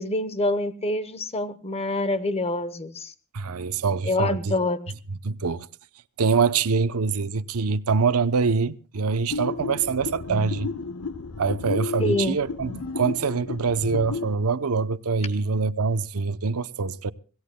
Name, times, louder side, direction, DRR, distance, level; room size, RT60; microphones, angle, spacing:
voice 1, 0.0-3.1 4.1-4.8 12.0-12.4, left 2 dB, 30° left, 0.9 m, -26 dB
voice 2, 3.3-4.5 5.1-5.7 6.2-10.7 11.4-17.1, right 5 dB, 80° right, 0.7 m, -24 dB
sound 1, 9.3-14.3, left 3 dB, 75° left, 0.8 m, -33 dB
25.5 x 16.0 x 2.2 m
head